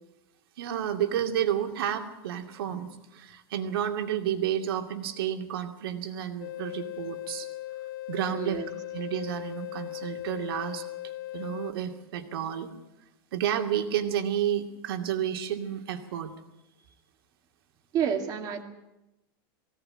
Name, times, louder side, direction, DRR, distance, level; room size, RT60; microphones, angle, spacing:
voice 1, 0.6-7.5 8.1-8.6 8.9-10.8 11.3-12.7 13.3-16.3, right 10 dB, 75° right, 5 dB, 2.6 m, -31 dB
sound 1, 6.4-11.7, left 15 dB, 70° left, 1.3 m, -38 dB
voice 2, 8.3-8.7 17.9-18.6, right 8 dB, 30° right, 4 dB, 2.3 m, -29 dB
20.5 x 17.0 x 9.0 m, 0.93 s
supercardioid pair, 155°, 13 cm